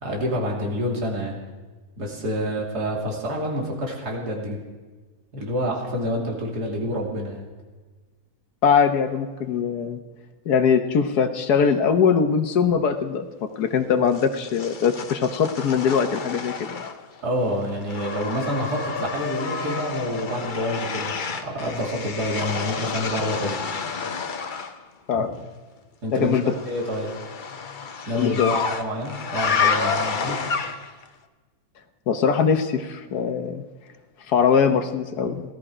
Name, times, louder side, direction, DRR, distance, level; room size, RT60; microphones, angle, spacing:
voice 1, 0.0-1.4 2.0-4.6 5.3-7.4 17.2-21.1 21.4-23.6 25.1-25.2 26.0-26.4 26.7-27.1 28.1-30.4, equal, 80° right, -1 dB, 3.3 m, -27 dB
voice 2, 8.6-10.0 10.4-13.2 13.6-16.5 25.1-25.3 26.1-26.5 28.1-28.6 32.1-33.6 34.3-35.4, left 6 dB, 75° left, 7 dB, 1.5 m, -21 dB
sound 1, 14.1-17.2 17.5-24.8 26.3-31.0, left 5 dB, 40° left, 0.7 m, -29 dB
17.5 x 13.0 x 4.9 m, 1.3 s
omnidirectional pair, 1.7 m